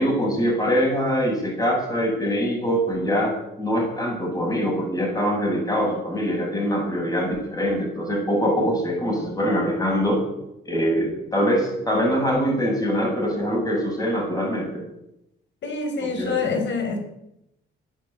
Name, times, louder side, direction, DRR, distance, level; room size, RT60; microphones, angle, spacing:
voice 1, 0.0-10.2 10.6-14.8 16.0-16.3, equal, 20° left, -1 dB, 7.8 m, -23 dB
voice 2, 15.6-17.0, left 4 dB, 65° left, 5 dB, 4.6 m, -26 dB
13.0 x 10.5 x 8.4 m, 0.83 s
cardioid pair, 90°, 20 cm